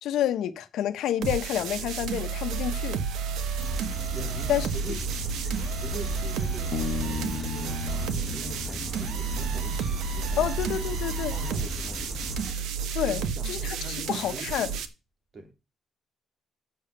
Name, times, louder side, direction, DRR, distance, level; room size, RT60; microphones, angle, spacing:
voice 1, 0.0-3.0 4.5-4.7 10.4-11.3 12.9-13.8 14.1-14.7, left 11 dB, 80° left, 1.1 m, -28 dB
sound 1, 1.2-14.9, right 6 dB, 85° right, 1.1 m, -31 dB
sound 2, 3.6-12.5, left 1 dB, 15° left, 4.8 m, -37 dB
voice 2, 4.1-5.3 5.8-10.9 11.3-12.2 13.1-14.8 15.3-15.5, right 2 dB, 45° right, 2.7 m, -42 dB
Bass guitar, 6.7-10.2, left 9 dB, 55° left, 1.2 m, -37 dB
7.8 x 6.9 x 6.7 m
cardioid pair, 90°, 0 cm